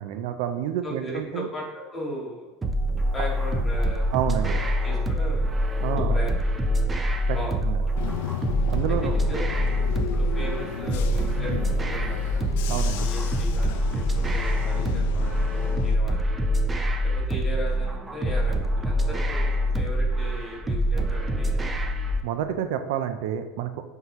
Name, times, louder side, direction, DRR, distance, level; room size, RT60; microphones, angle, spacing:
voice 1, 0.0-1.5 4.1-4.6 5.8-6.2 7.3-7.4 7.6-7.8 8.7-9.1 12.7-13.1 22.2-23.8, right 10 dB, 75° right, 9 dB, 0.5 m, -29 dB
voice 2, 0.8-2.5 3.1-4.1 4.4-5.5 6.0-6.5 7.3-7.9 8.9-9.5 10.1-12.4 13.0-15.4 15.8-16.4 17.0-21.6, left 1 dB, 15° left, -2 dB, 2.1 m, -37 dB
sound 1, 2.6-22.2, equal, 15° right, 0.6 m, -25 dB
Bus / Engine, 8.0-16.0, left 9 dB, 80° left, 0.5 m, -34 dB
9.3 x 3.7 x 3.0 m, 1.1 s
supercardioid pair, 120°, 0 cm